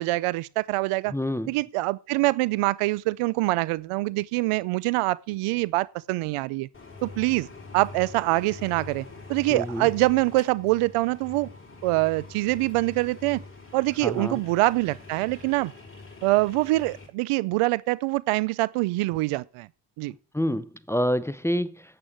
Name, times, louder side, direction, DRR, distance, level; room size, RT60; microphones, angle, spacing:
voice 1, 0.0-1.1 1.5-6.7 7.0-7.5 7.7-11.5 11.8-13.4 13.7-15.7 16.2-19.7 20.0-20.1, right 20 dB, 90° right, 0.6 m, -25 dB
voice 2, 1.1-1.5 9.5-9.9 14.0-14.4 20.3-22.0, equal, 5° left, 0.7 m, -27 dB
sound 1, 6.7-17.1, left 3 dB, 25° left, 5.8 m, -44 dB
8.8 x 8.3 x 9.3 m
cardioid pair, 70°, 50 cm